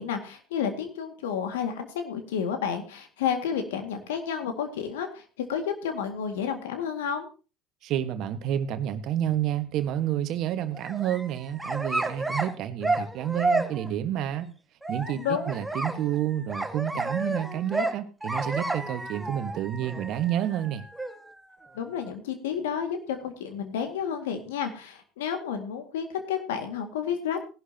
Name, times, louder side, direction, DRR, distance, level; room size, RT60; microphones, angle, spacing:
voice 1, 0.0-5.2 5.5-7.3 15.1-15.5 21.7-27.4, left 7 dB, 80° left, 6 dB, 2.0 m, -31 dB
voice 2, 7.8-14.5 14.9-20.9, right 11 dB, 60° right, 10 dB, 1.4 m, -29 dB
sound 1, 10.7-12.5 12.8-13.9 14.8-22.1, right 2 dB, 10° right, 1.7 m, -31 dB
18.0 x 11.5 x 2.9 m, 0.33 s
hypercardioid pair, 65°, 0 cm